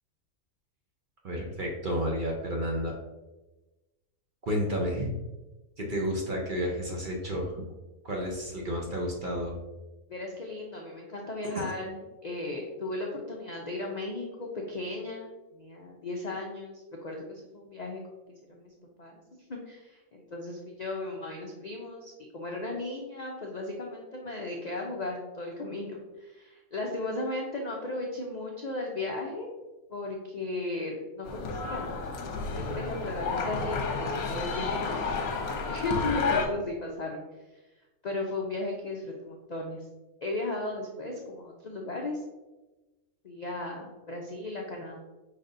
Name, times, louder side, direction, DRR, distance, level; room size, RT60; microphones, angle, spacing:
voice 1, 1.2-3.0 4.4-5.1 5.8-7.6 8.0-9.6 11.5-11.6, equal, 45° right, -1 dB, 0.7 m, -31 dB
voice 2, 10.1-12.0 12.2-18.2 18.5-18.7 19.0-19.2 19.5-29.5 29.9-35.2 35.7-37.2 38.0-39.8 40.2-42.2 43.2-45.0, left 2 dB, 65° left, 0 dB, 0.4 m, -36 dB
sound 1, 31.2-36.5, left 4 dB, 85° left, 1.2 m, -31 dB
5.0 x 4.1 x 2.5 m, 1.1 s
omnidirectional pair, 1.5 m